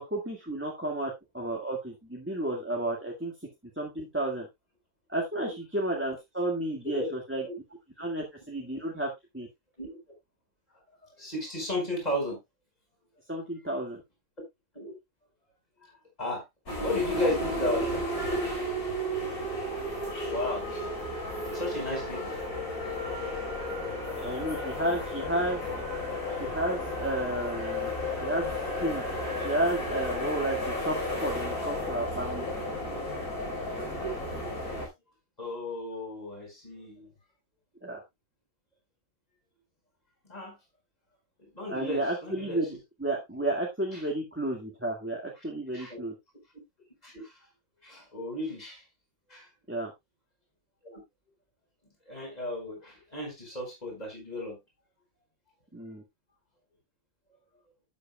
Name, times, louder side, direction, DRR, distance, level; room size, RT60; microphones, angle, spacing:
voice 1, 0.0-3.3 3.8-4.5 5.1-7.4 8.0-9.5 13.3-14.0 24.2-25.6 26.3-27.9 28.2-28.5 28.8-29.0 29.4-32.5 37.8-38.0 41.7-46.1 49.7-49.9 55.7-56.0, right 1 dB, 10° right, 1.8 m, -32 dB
voice 2, 11.0-12.4 14.8-14.9 15.8-15.9 16.2-16.4 16.8-18.0 19.3-19.6 20.3-20.7 21.2-22.5 22.8-22.9 24.0-24.1 35.4-37.1 40.2-40.6 41.5-42.8 43.9-44.0 45.4-45.5 45.7-46.0 47.0-47.4 47.8-48.8 49.3-49.5 50.8-51.0 52.1-54.6, left 1 dB, 25° left, 5.1 m, -34 dB
sound 1, 16.7-34.9, left 1 dB, 85° left, 5.0 m, -33 dB
12.5 x 8.4 x 2.3 m
omnidirectional pair, 1.5 m